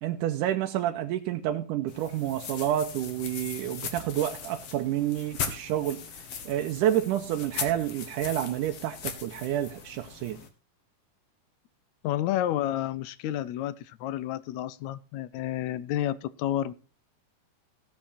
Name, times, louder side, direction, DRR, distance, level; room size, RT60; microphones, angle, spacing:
voice 1, 0.0-6.0 6.5-10.4, right 12 dB, 90° right, 4 dB, 2.3 m, -29 dB
sound 1, 1.9-10.5, left 6 dB, 60° left, 2.4 m, -39 dB
voice 2, 12.0-16.7, left 12 dB, 75° left, 16 dB, 1.9 m, -30 dB
16.5 x 7.5 x 4.2 m, 0.33 s
omnidirectional pair, 3.6 m